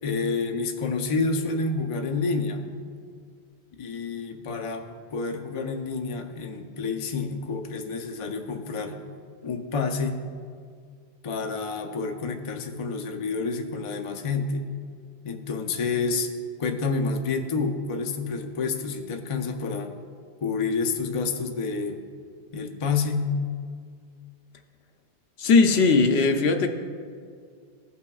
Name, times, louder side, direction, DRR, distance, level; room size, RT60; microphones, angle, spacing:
voice 1, 0.0-2.7 3.8-8.9 9.4-10.2 11.2-14.6 15.2-16.3 16.6-19.9 20.4-22.0 22.5-23.3, left 4 dB, 40° left, 3 dB, 0.5 m, -29 dB
voice 2, 25.4-26.7, left 4 dB, 70° left, 5 dB, 0.9 m, -19 dB
16.5 x 5.6 x 2.3 m, 2.1 s
omnidirectional pair, 1.1 m